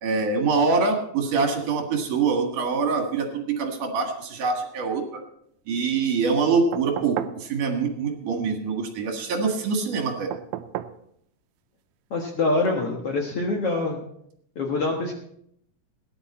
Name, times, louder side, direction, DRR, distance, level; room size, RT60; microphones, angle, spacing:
voice 1, 0.0-5.2 5.7-10.3, right 4 dB, 65° right, 3 dB, 3.2 m, -24 dB
sound 1, 6.7-7.4 10.3-11.0 12.6-12.7, right 13 dB, 85° right, 2.4 m, -33 dB
voice 2, 12.1-14.0 14.6-15.1, left 2 dB, 55° left, 1 dB, 1.8 m, -25 dB
17.0 x 10.5 x 4.2 m, 0.72 s
omnidirectional pair, 4.1 m